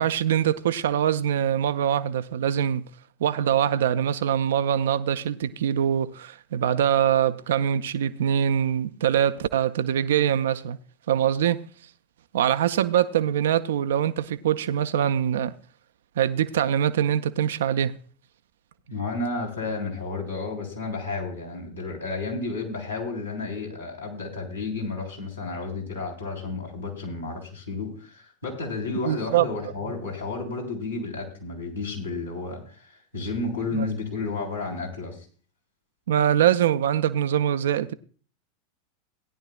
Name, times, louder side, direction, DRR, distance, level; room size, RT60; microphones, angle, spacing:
voice 1, 0.0-2.9 3.2-10.8 11.1-11.6 12.3-15.5 16.2-18.0 29.0-29.5 33.7-33.9 36.1-37.9, right 10 dB, 65° right, 0.4 m, -23 dB
voice 2, 18.9-35.3, left 3 dB, 85° left, 3.6 m, -32 dB
17.0 x 10.5 x 2.3 m
figure-of-eight pair, 85°, 0 cm